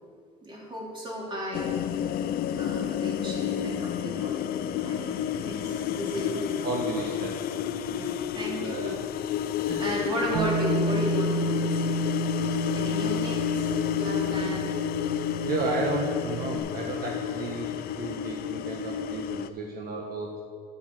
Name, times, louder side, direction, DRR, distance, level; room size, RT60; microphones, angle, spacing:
voice 1, 0.4-1.7 2.6-4.4 4.7-6.4 7.9-8.9 9.8-12.1 12.7-14.7, equal, 30° right, -3 dB, 2.6 m, -34 dB
sound 1, 1.5-19.5, left 9 dB, 60° left, 0.4 m, -30 dB
voice 2, 6.6-7.4 8.6-9.0 9.7-10.4 15.4-20.4, right 2 dB, 65° right, 0 dB, 1.2 m, -33 dB
Bass guitar, 10.3-16.6, right 1 dB, 85° right, 1.0 m, -30 dB
7.1 x 7.1 x 6.6 m, 2.1 s
cardioid pair, 110°, 17 cm